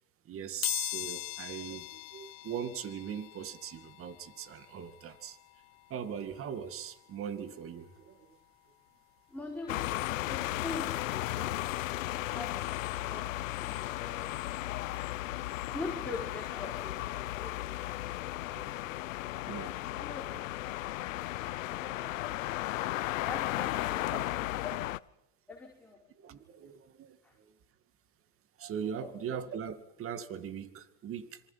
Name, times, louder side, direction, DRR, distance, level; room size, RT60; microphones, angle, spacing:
voice 1, 0.3-5.4 5.9-8.4 18.5-19.0 19.5-19.8 20.1-20.2 23.0-23.2 26.2-27.2 28.6-31.4, right 8 dB, 35° right, 2.2 m, -40 dB
sound 1, 0.6-11.3 11.8-11.9 13.0-13.1 13.4-15.5 15.8-18.5 18.8-19.0 19.3-19.4, left 22 dB, 70° left, 1.1 m, -43 dB
voice 2, 9.3-10.0 10.3-11.7 12.3-12.8 13.1-14.9 15.7-18.0 19.9-21.1 21.6-22.2 23.2-25.0 25.5-26.1 27.2-27.3 28.8-29.1, left 3 dB, 5° left, 5.1 m, -44 dB
sound 2, 9.7-25.0, left 16 dB, 90° left, 0.9 m, -35 dB
26.5 x 25.0 x 5.8 m
supercardioid pair, 120°, 38 cm